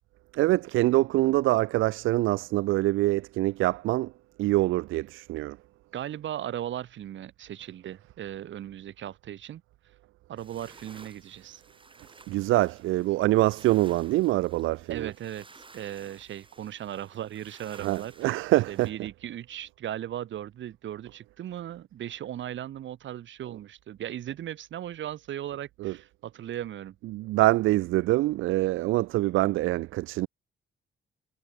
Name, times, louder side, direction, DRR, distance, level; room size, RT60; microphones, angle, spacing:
voice 1, 0.3-4.1 4.4-5.6 12.3-15.1 17.8-18.9 25.8-25.9 27.1-30.3, right 18 dB, 90° right, 0.6 m, -25 dB
voice 2, 5.9-9.6 10.3-11.6 14.9-18.4 18.7-27.0, right 11 dB, 70° right, 3.2 m, -37 dB
sound 1, 10.4-18.9, right 3 dB, 25° right, 4.8 m, -55 dB
cardioid pair, 90°, 20 cm